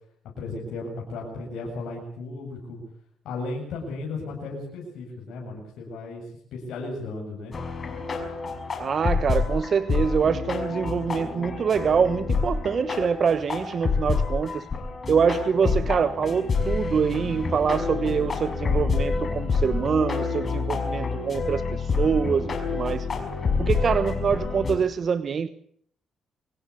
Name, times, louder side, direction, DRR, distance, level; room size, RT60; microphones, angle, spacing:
voice 1, 0.4-2.8 3.2-6.3 6.5-7.6, left 3 dB, 80° left, -2 dB, 7.1 m, -35 dB
sound 1, 7.5-24.8, left 4 dB, 40° left, 5.7 m, -28 dB
voice 2, 8.8-14.7 15.1-23.1 23.6-25.5, right 6 dB, 50° right, 12 dB, 1.1 m, -25 dB
25.0 x 17.5 x 8.5 m, 0.63 s
cardioid pair, 90°, 0 cm